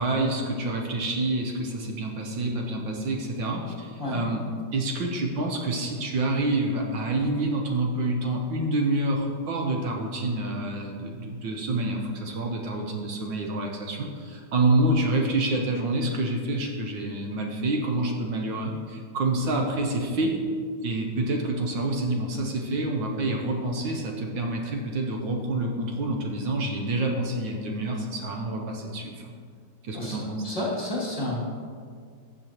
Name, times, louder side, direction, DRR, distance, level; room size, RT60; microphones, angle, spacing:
voice 1, 0.0-4.4 4.7-20.3 20.8-29.1 29.8-30.4, right 2 dB, 70° right, 1 dB, 1.6 m, -27 dB
voice 2, 29.9-31.5, left 1 dB, 15° left, -6 dB, 2.1 m, -31 dB
14.5 x 7.0 x 3.0 m, 2.1 s
omnidirectional pair, 2.2 m